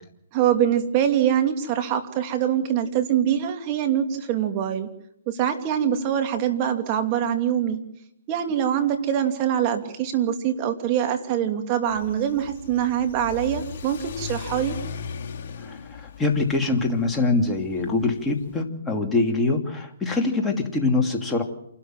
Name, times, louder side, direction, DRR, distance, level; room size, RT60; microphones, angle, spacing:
voice 1, 0.3-4.9 5.3-7.8 8.3-14.8, right 9 dB, 35° right, 6 dB, 2.8 m, -24 dB
Car / Accelerating revving vroom, 11.9-18.6, left 5 dB, 45° left, 2.7 m, -38 dB
voice 2, 15.6-21.4, left 3 dB, 10° left, 1 dB, 2.8 m, -24 dB
28.0 x 13.0 x 7.8 m, 0.79 s
hypercardioid pair, 140°, 0 cm